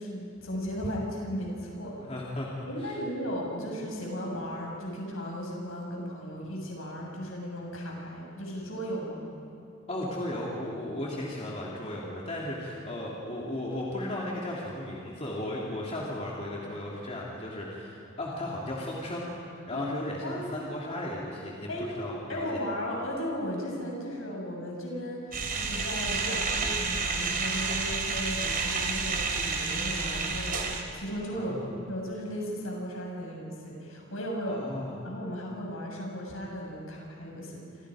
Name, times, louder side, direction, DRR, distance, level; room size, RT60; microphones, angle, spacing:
voice 1, 0.0-2.0 2.6-9.2 19.7-19.9 20.2-20.6 21.7-21.9 22.3-34.6 35.0-37.9, equal, 90° left, -1 dB, 6.5 m, -36 dB
voice 2, 2.0-2.5 2.8-3.0 9.9-22.6 31.3-31.7 34.5-34.9, left 1 dB, 35° left, -4 dB, 3.1 m, -35 dB
sound 1, 25.3-30.8, right 4 dB, 45° right, 3.2 m, -30 dB
28.0 x 28.0 x 5.1 m, 2.8 s
head